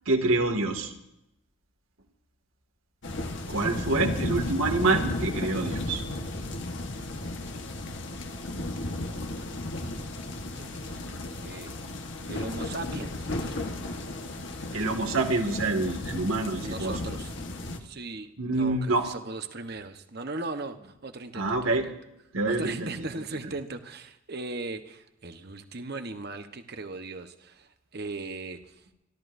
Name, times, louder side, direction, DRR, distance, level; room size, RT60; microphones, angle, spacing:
voice 1, 0.1-0.9 3.5-6.0 14.7-17.0 18.4-19.1 21.3-21.9 22.3-22.9, right 2 dB, 80° right, 3 dB, 2.2 m, -26 dB
sound 1, 3.0-17.8, left 2 dB, 55° left, 1.3 m, -34 dB
voice 2, 7.4-8.2 9.3-9.9 10.5-11.7 12.3-13.6 16.6-17.3 17.8-21.9 22.5-28.7, right 3 dB, 50° right, 7 dB, 1.1 m, -39 dB
27.0 x 13.5 x 2.7 m, 0.83 s
head